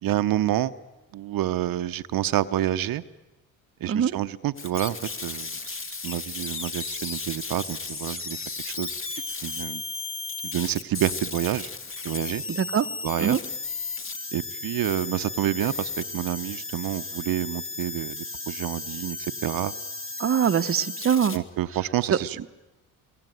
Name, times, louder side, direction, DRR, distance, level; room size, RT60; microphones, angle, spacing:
voice 1, 0.0-0.7 1.1-3.0 3.8-5.0 5.2-8.4 8.6-9.8 10.4-11.7 12.0-12.4 13.0-13.4 14.3-19.7 21.3-22.5, right 13 dB, 65° right, 11 dB, 0.9 m, -28 dB
sound 1, 4.6-21.4, left 3 dB, 35° left, 2.6 m, -34 dB
voice 2, 12.5-12.9 13.2-13.4 20.2-21.4 22.1-22.2, right 8 dB, 35° right, 10 dB, 1.0 m, -22 dB
26.0 x 23.0 x 9.3 m, 1.1 s
cardioid pair, 85°, 37 cm